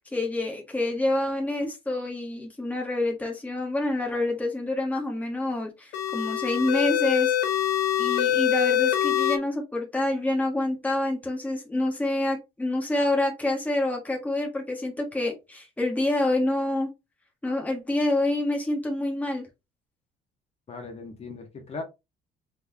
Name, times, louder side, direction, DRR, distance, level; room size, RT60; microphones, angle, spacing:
voice 1, 0.1-7.6 8.0-16.9 17.4-19.5, left 1 dB, 10° left, 1.5 m, -27 dB
sound 1, 5.9-9.4, left 10 dB, 85° left, 1.1 m, -24 dB
voice 2, 20.7-21.8, left 3 dB, 40° left, 1.6 m, -38 dB
3.9 x 3.8 x 3.5 m
cardioid pair, 110°, 17 cm